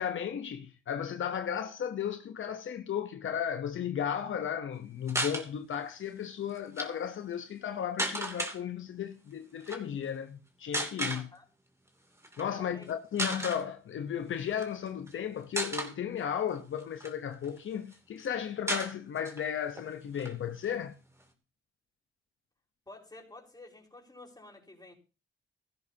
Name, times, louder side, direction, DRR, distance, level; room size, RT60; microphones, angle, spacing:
voice 1, 0.0-11.3 12.4-21.0, left 8 dB, 75° left, 1.0 m, -35 dB
sound 1, 5.1-5.5 6.6-6.9 8.0-8.6 9.6-9.8 10.7-11.2 12.2-12.4 12.8-12.9 13.2-13.6 14.5-15.1 15.6-15.9 16.6-17.6 17.9-18.0 18.2-18.3 18.7-19.4 19.8-19.9 20.1-21.2, right 1 dB, 15° right, 2.8 m, -34 dB
voice 2, 11.0-11.4 12.5-12.9 22.9-24.9, left 2 dB, 20° left, 5.0 m, -51 dB
16.5 x 13.5 x 2.9 m
cardioid pair, 70°, 20 cm